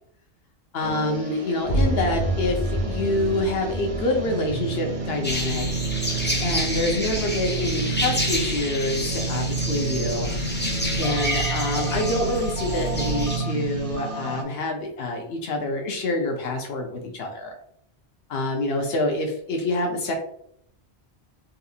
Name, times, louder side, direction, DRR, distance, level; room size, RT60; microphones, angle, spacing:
voice 1, 0.7-5.7 6.4-10.3 10.9-17.6 18.3-20.1, left 2 dB, 70° left, 3 dB, 1.0 m, -27 dB
sound 1, 0.8-14.4, right 4 dB, 45° right, 0.5 m, -30 dB
sound 2, 1.6-7.2, right 1 dB, 45° left, 0.7 m, -29 dB
sound 3, 5.2-13.4, left 1 dB, 15° left, 0.5 m, -29 dB
3.9 x 2.4 x 2.7 m, 0.69 s
omnidirectional pair, 1.1 m